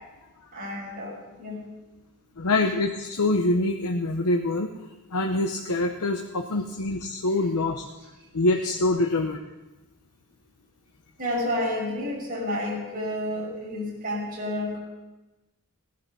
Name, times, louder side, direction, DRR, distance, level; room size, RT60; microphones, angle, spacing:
voice 1, 0.5-1.6 11.2-14.8, left 1 dB, 40° right, -4 dB, 6.3 m, -30 dB
voice 2, 2.4-4.7 5.1-7.8 8.3-9.4, left 2 dB, 90° left, 4 dB, 0.9 m, -25 dB
17.0 x 10.5 x 5.4 m, 1.1 s
head